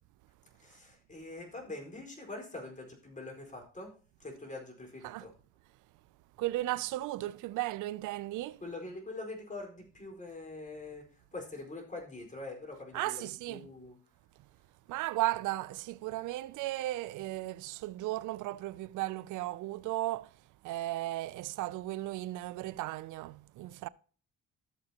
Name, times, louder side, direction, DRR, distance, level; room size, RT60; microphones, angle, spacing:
voice 1, 0.6-3.9 4.2-5.3 8.6-14.0, left 2 dB, 25° left, 4.5 m, -44 dB
voice 2, 6.4-8.6 12.9-13.7 14.9-20.3 20.6-23.9, right 17 dB, 85° right, 0.5 m, -35 dB
14.0 x 7.6 x 2.9 m
cardioid pair, 90°, 30 cm